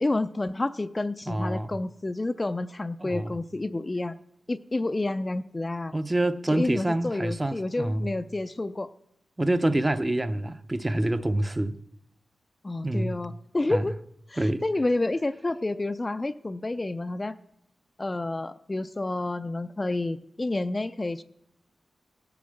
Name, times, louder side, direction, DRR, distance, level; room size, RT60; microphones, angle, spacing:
voice 1, 0.0-4.2 4.5-5.9 6.5-8.9 12.6-14.0 14.3-17.4 18.0-21.2, left 2 dB, 25° left, 0.4 m, -29 dB
voice 2, 1.3-1.7 3.0-3.4 5.9-8.1 9.4-11.8 12.8-13.2 13.7-13.9 14.4-14.6, right 1 dB, 20° right, 0.6 m, -27 dB
17.0 x 6.9 x 6.5 m
cardioid pair, 75°, 0 cm